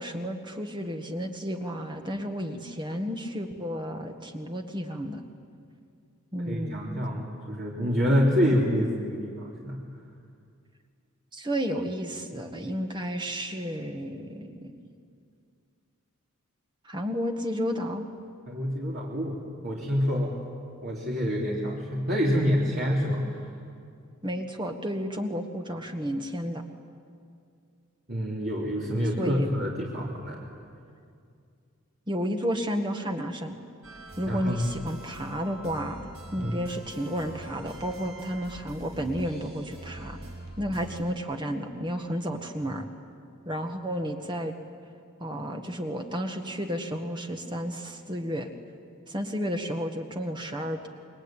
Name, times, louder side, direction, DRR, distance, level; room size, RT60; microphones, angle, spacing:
voice 1, 0.0-5.2 6.3-7.0 11.3-14.8 16.8-18.1 24.2-26.6 29.2-29.5 32.1-33.5 34.2-36.0 36.3-40.2 40.6-42.9 43.4-44.5 45.2-48.5 49.1-50.9, equal, 20° right, 4 dB, 1.6 m, -32 dB
voice 2, 6.5-9.8 18.5-19.4 19.6-20.4 20.8-23.4 28.1-30.4 34.3-34.7 36.4-36.5, equal, 50° right, -4 dB, 3.4 m, -27 dB
sound 1, 33.8-41.0, right 1 dB, 75° right, 6.1 m, -44 dB
28.5 x 23.0 x 9.1 m, 2.3 s
head